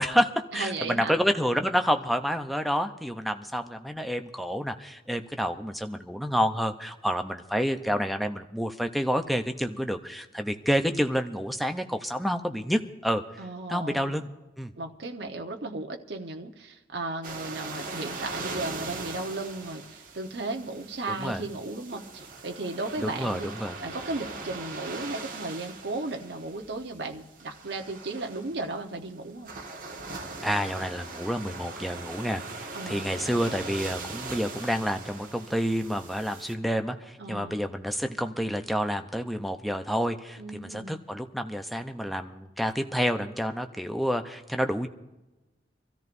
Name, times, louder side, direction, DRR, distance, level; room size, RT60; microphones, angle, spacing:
voice 1, 0.0-13.2 13.7-14.3 14.6-14.7 21.1-21.4 23.0-23.8 30.4-44.9, equal, ahead, 6 dB, 0.6 m, -29 dB
voice 2, 0.5-1.1 13.4-14.2 14.8-23.5 23.8-29.5 32.7-33.1 37.2-37.6 40.4-41.0, right 2 dB, 70° right, 2 dB, 1.1 m, -35 dB
sound 1, 17.2-36.5, right 3 dB, 50° right, 1.6 m, -40 dB
26.0 x 13.5 x 2.6 m, 1.1 s
head